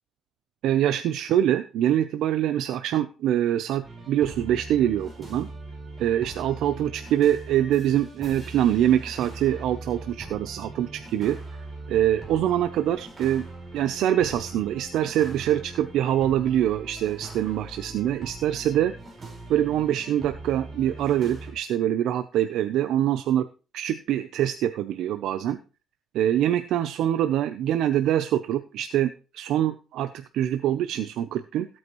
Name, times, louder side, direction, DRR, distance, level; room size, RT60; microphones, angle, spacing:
voice 1, 0.6-5.5 6.0-11.4 11.9-13.5 13.7-18.9 19.5-23.5 23.7-25.6 26.1-31.7, right 11 dB, 85° right, 10 dB, 0.6 m, -24 dB
sound 1, 3.8-21.5, right 2 dB, 20° right, 4.8 m, -41 dB
16.0 x 8.7 x 3.1 m, 0.33 s
cardioid pair, 145°, 0 cm